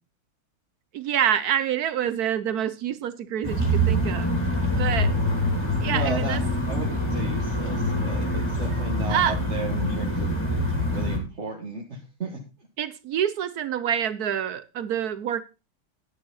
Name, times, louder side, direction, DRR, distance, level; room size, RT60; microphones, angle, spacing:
voice 1, 0.9-4.3 4.7-5.1 5.8-6.4 9.0-9.4 12.8-15.4, right 9 dB, 75° right, 0.8 m, -27 dB
sound 1, 3.4-11.2, equal, 10° left, 2.4 m, -25 dB
voice 2, 5.9-6.4 6.7-10.4 10.9-12.4, right 3 dB, 35° right, 1.8 m, -34 dB
10.5 x 10.5 x 4.0 m
omnidirectional pair, 2.4 m